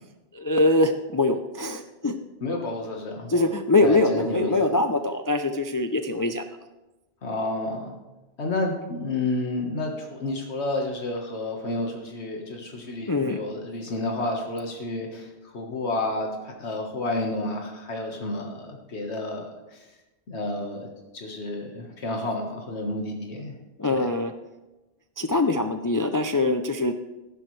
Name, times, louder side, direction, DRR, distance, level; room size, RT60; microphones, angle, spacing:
voice 1, 0.3-2.1 3.3-6.4 13.1-13.4 23.8-24.3 25.2-27.0, left 2 dB, 30° left, 7 dB, 0.4 m, -23 dB
voice 2, 2.4-3.5 3.8-4.5 7.2-7.9 8.4-19.9 20.3-23.6 23.9-24.1, left 2 dB, 90° left, 1 dB, 1.7 m, -30 dB
14.0 x 11.0 x 3.2 m, 1.1 s
omnidirectional pair, 1.1 m